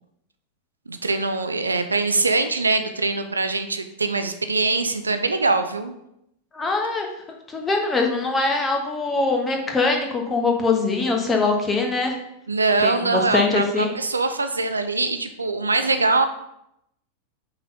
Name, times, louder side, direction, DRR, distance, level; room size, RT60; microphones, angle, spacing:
voice 1, 0.9-5.9 12.5-16.2, right 3 dB, 80° right, 9 dB, 0.5 m, -23 dB
voice 2, 6.5-7.1 7.5-12.2 12.8-13.9, left 3 dB, 15° left, 2 dB, 1.2 m, -22 dB
5.8 x 4.0 x 5.5 m, 0.80 s
figure-of-eight pair, 90°, 0 cm